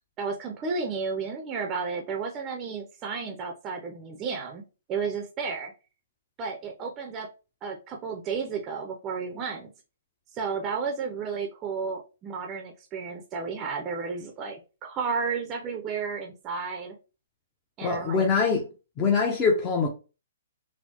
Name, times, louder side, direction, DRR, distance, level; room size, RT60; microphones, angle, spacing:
voice 1, 0.2-4.6 4.9-5.7 6.4-7.3 7.6-9.7 10.3-17.0 17.8-18.2, right 5 dB, 25° right, 0.5 m, -32 dB
voice 2, 17.8-18.7 19.0-19.9, left 5 dB, 25° left, 0.6 m, -23 dB
4.3 x 2.0 x 2.8 m
hypercardioid pair, 145°, 0 cm